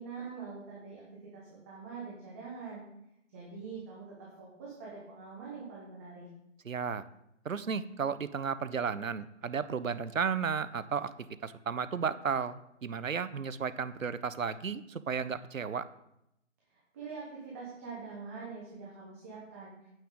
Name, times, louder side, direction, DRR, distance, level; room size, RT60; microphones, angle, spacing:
voice 1, 0.0-2.8 3.3-6.3 16.7-19.9, right 5 dB, 10° right, -5 dB, 1.0 m, -44 dB
voice 2, 6.6-7.0 7.4-11.1 11.4-15.8, right 6 dB, 90° right, 14 dB, 0.8 m, -33 dB
9.1 x 8.7 x 3.8 m, 0.84 s
figure-of-eight pair, 160°, 39 cm